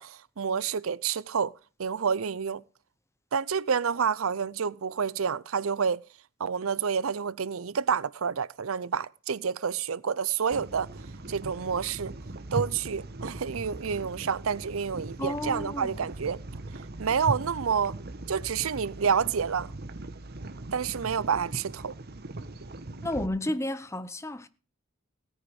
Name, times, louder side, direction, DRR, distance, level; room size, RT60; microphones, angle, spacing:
voice 1, 0.0-1.5 1.8-2.6 3.3-6.0 6.4-10.9 11.3-12.1 12.5-16.4 17.0-18.0 18.3-19.7 20.7-21.9, right 6 dB, 80° right, 0.6 m, -29 dB
sound 1, 10.5-23.3, right 2 dB, 50° right, 1.2 m, -39 dB
voice 2, 15.2-16.0 23.0-24.5, left 1 dB, 15° left, 0.8 m, -32 dB
17.0 x 9.4 x 4.9 m
head